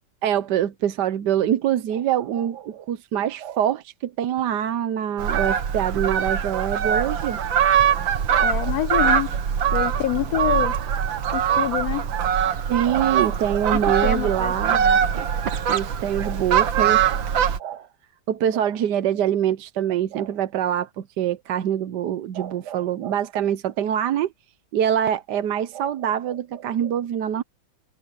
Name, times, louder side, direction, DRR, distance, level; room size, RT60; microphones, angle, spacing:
voice 1, 0.2-7.4 8.3-8.7 12.7-14.8 15.1-15.4 15.7-17.2 17.6-17.9 18.3-24.3 24.7-27.4, right 10 dB, 70° right, 1.3 m, -24 dB
Fowl, 5.2-17.6, right 8 dB, 85° right, 2.1 m, -22 dB
voice 2, 8.4-9.3 9.7-10.7 11.3-12.1 13.7-15.0, left 14 dB, 70° left, 0.9 m, -27 dB
omnidirectional pair, 2.0 m